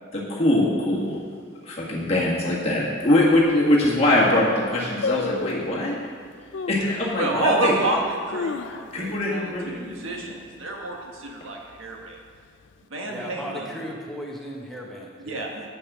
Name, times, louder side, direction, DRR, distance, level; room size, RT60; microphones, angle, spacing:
voice 1, 0.1-1.2 1.7-5.9 6.7-7.8 8.9-9.9, left 1 dB, 30° left, -5 dB, 1.8 m, -22 dB
sound 1, 3.0-3.1 3.7-3.8 4.0-4.4 5.0-5.8 6.5-6.9 7.4-7.5 8.1-9.2 9.5-9.6 9.9-10.3 10.7-11.1 11.7-12.5 12.7-12.8, left 5 dB, 65° left, 0.4 m, -31 dB
voice 2, 7.1-12.2 12.9-13.7 15.2-15.7, right 2 dB, 90° right, 0 dB, 1.4 m, -29 dB
voice 3, 13.1-15.5, equal, ahead, -3 dB, 1.0 m, -36 dB
8.4 x 6.4 x 6.1 m, 2.1 s
head